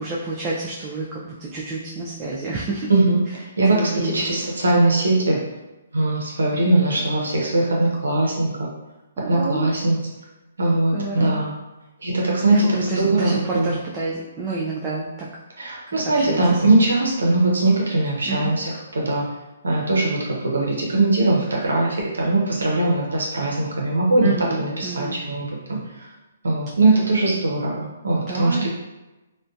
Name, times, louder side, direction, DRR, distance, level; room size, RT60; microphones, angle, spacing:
voice 1, 0.0-2.9 3.7-4.2 9.2-9.8 10.9-11.4 12.5-15.3 15.9-16.6 18.3-18.5 24.2-25.2 28.3-28.7, right 3 dB, 20° right, -5 dB, 0.4 m, -29 dB
voice 2, 2.9-3.2 3.6-5.4 5.9-8.7 9.3-10.0 10.6-11.5 12.0-13.7 15.6-19.3 19.6-26.1 26.4-28.7, right 2 dB, 80° right, -3 dB, 0.6 m, -20 dB
2.5 x 2.1 x 2.3 m, 1.1 s
hypercardioid pair, 135°, 0 cm